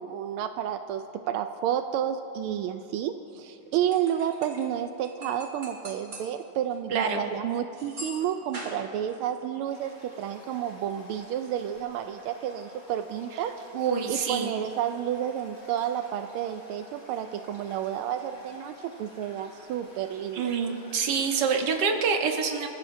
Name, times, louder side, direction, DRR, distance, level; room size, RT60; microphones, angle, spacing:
voice 1, 0.0-13.7 14.1-20.4, right 10 dB, 85° right, 8 dB, 1.5 m, -31 dB
sound 1, 3.6-4.7 5.0-6.4 6.7-6.8 7.8-9.3, right 1 dB, 40° right, 2.5 m, -42 dB
voice 2, 6.9-7.2 13.7-14.5 20.3-22.7, right 5 dB, 60° right, 3 dB, 1.7 m, -26 dB
Toilet flush, 9.7-21.8, equal, 65° left, 5.2 m, -52 dB
27.0 x 15.0 x 2.7 m, 2.6 s
omnidirectional pair, 2.3 m